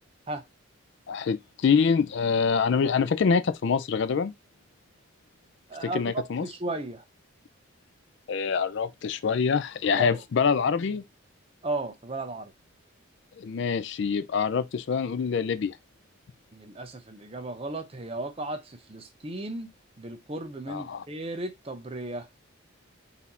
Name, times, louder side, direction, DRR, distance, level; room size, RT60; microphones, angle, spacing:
voice 1, 1.1-4.3 5.8-6.4 8.3-11.0 13.4-15.8 20.7-21.0, left 6 dB, 55° left, 0.3 m, -25 dB
voice 2, 5.7-6.1 6.4-7.0 10.0-10.2 11.6-12.5 16.5-19.7 20.0-22.3, right 2 dB, 25° right, 0.6 m, -35 dB
4.1 x 2.7 x 4.1 m
head